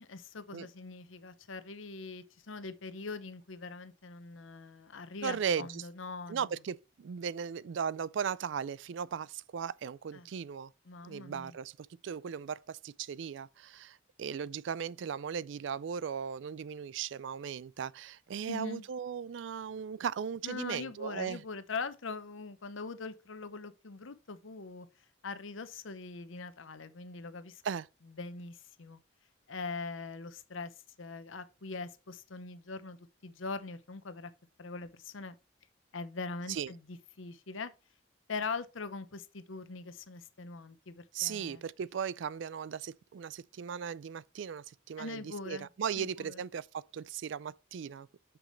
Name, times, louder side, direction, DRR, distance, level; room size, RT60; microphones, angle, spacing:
voice 1, 0.0-6.4 10.1-10.3 10.9-11.5 18.5-18.9 20.4-24.9 25.2-27.6 28.2-29.0 29.5-33.0 33.2-34.3 34.6-35.3 35.9-37.7 38.3-41.6 45.0-45.7 46.0-46.4, left 4 dB, 80° left, 0.9 m, -42 dB
voice 2, 5.2-5.8 6.3-10.7 11.0-21.4 27.6-27.9 36.5-36.7 41.1-48.1, right 7 dB, 65° right, 0.3 m, -37 dB
8.2 x 6.0 x 3.2 m
head